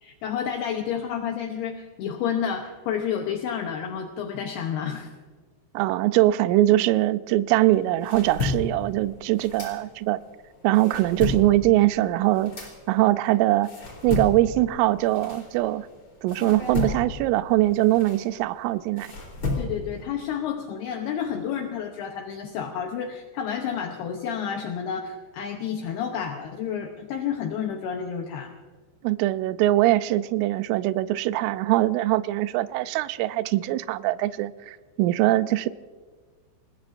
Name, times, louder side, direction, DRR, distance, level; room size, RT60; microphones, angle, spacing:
voice 1, 0.0-5.1 19.6-28.5, left 8 dB, 80° left, 3 dB, 2.3 m, -30 dB
voice 2, 5.7-10.2 10.6-12.5 12.9-13.7 14.0-15.9 16.2-19.1 29.0-35.7, right 16 dB, 85° right, 13 dB, 3.1 m, -22 dB
sound 1, 7.7-10.2 10.6-15.9 16.3-20.0, left 3 dB, 30° left, 3.9 m, -33 dB
27.0 x 20.0 x 2.6 m, 1.4 s
omnidirectional pair, 5.9 m